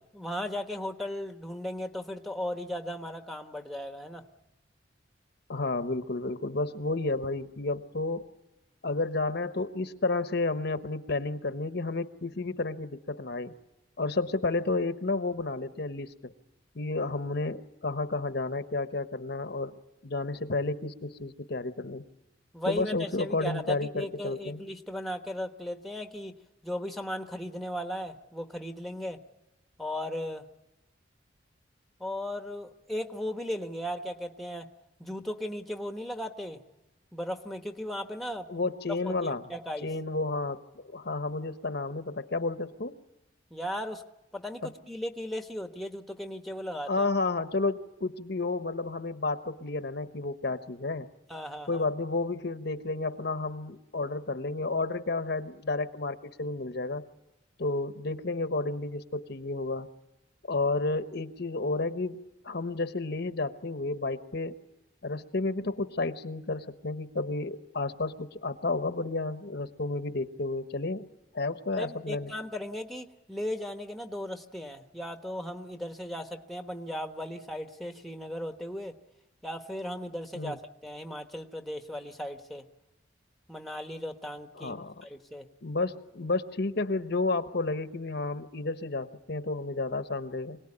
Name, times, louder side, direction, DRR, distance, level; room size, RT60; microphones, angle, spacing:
voice 1, 0.1-4.2 22.5-26.3 26.6-29.2 29.8-30.4 32.0-34.7 35.0-36.6 37.1-38.5 39.0-39.9 43.5-44.0 44.3-47.1 51.3-51.9 71.7-78.9 79.4-82.6 83.5-85.5, left 1 dB, ahead, 6 dB, 1.2 m, -36 dB
voice 2, 5.5-8.3 8.8-13.5 14.0-16.3 16.7-19.7 20.0-22.0 22.7-24.6 38.5-39.5 39.8-43.0 44.6-44.7 46.9-51.1 51.7-57.1 57.6-59.9 60.5-64.5 65.0-71.1 71.3-72.3 80.3-80.6 84.6-84.9 85.6-90.6, left 3 dB, 60° left, 10 dB, 1.1 m, -31 dB
25.5 x 19.0 x 9.9 m, 0.97 s
head